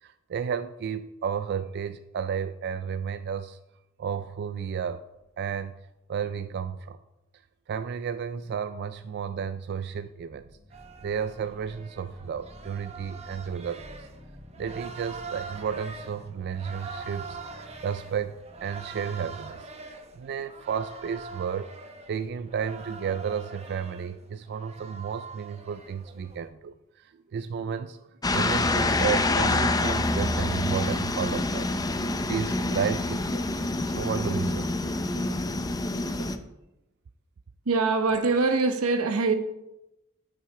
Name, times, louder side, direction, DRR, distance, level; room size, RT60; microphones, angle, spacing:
voice 1, 0.0-3.6 4.0-5.1 5.4-5.7 6.1-7.0 7.7-10.6 11.0-14.1 14.6-21.7 22.1-28.1 28.3-31.7 32.2-34.8, right 7 dB, 50° right, 0.3 m, -32 dB
sound 1, 5.2-5.7 10.1-20.3, left 1 dB, 65° left, 2.6 m, -51 dB
sound 2, 10.7-26.5, right 4 dB, 30° right, 0.9 m, -44 dB
sound 3, 28.2-36.4, left 2 dB, 20° left, 0.5 m, -26 dB
voice 2, 37.6-39.3, right 3 dB, 90° right, 1.0 m, -23 dB
9.7 x 6.1 x 4.8 m
head